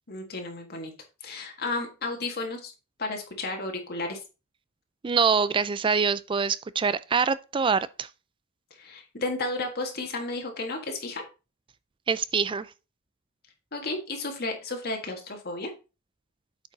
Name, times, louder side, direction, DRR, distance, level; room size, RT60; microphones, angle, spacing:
voice 1, 0.1-0.9 1.2-2.7 3.0-4.2 8.8-11.2 13.7-15.7, left 2 dB, 45° left, 1.6 m, -33 dB
voice 2, 5.0-8.1 12.1-12.7, right 5 dB, 25° right, 0.3 m, -25 dB
8.6 x 5.3 x 4.0 m
head